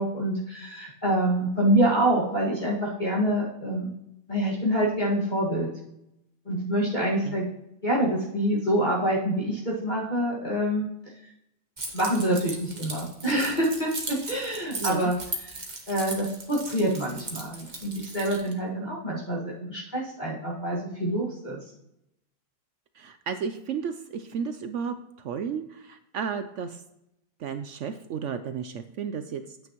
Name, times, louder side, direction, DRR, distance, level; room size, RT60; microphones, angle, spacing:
voice 1, 0.0-3.9 4.3-5.7 6.5-7.5 7.8-10.9 11.9-15.2 15.9-21.6, right 1 dB, 30° left, -5 dB, 2.0 m, -26 dB
Keys jangling, 11.8-18.5, right 2 dB, 30° right, 1.3 m, -37 dB
voice 2, 14.8-15.1 22.9-26.8 27.4-29.6, right 6 dB, 65° right, 9 dB, 0.7 m, -33 dB
9.4 x 8.6 x 3.0 m, 0.83 s
omnidirectional pair, 1.7 m